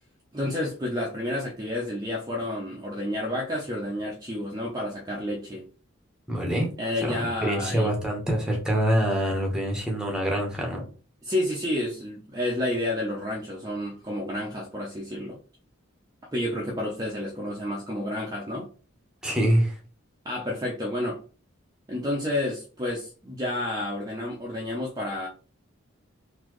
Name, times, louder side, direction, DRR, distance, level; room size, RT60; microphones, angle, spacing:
voice 1, 0.3-5.6 6.8-7.9 11.2-15.4 16.3-18.7 20.2-21.2 21.9-25.3, left 1 dB, 20° right, 0.7 m, -30 dB
voice 2, 6.3-6.7 6.9-10.8 19.2-19.8, equal, 5° right, 1.0 m, -25 dB
4.1 x 2.8 x 3.1 m
head